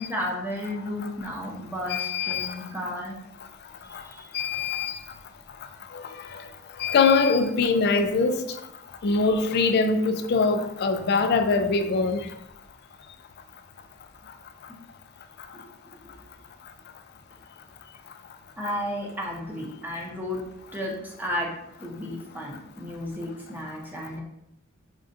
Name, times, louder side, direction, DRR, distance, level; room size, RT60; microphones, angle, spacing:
voice 1, 0.0-3.2 3.8-4.3 15.5-15.6 18.6-20.4 20.7-21.5 21.8-24.2, left 1 dB, 10° right, 0.7 m, -33 dB
voice 2, 1.9-2.5 3.9-4.0 4.3-5.0 5.9-6.0 6.3-6.4 6.8-8.4 9.0-12.2, left 4 dB, 50° left, 0.4 m, -23 dB
5.2 x 2.4 x 2.6 m
head